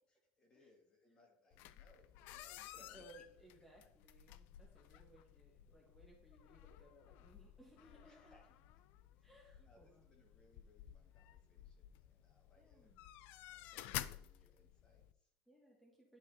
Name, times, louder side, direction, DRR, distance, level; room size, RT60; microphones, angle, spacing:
voice 1, 0.1-3.2 8.0-8.8 9.2-13.1 13.5-15.3, left 1 dB, 25° left, 1 dB, 1.6 m, -70 dB
sound 1, 1.5-15.1, left 13 dB, 55° left, 0.3 m, -53 dB
voice 2, 2.9-8.4 9.2-10.0 12.6-13.1 15.5-16.2, right 1 dB, ahead, -5 dB, 1.2 m, -63 dB
10.5 x 4.8 x 2.7 m, 0.67 s
supercardioid pair, 140°, 4 cm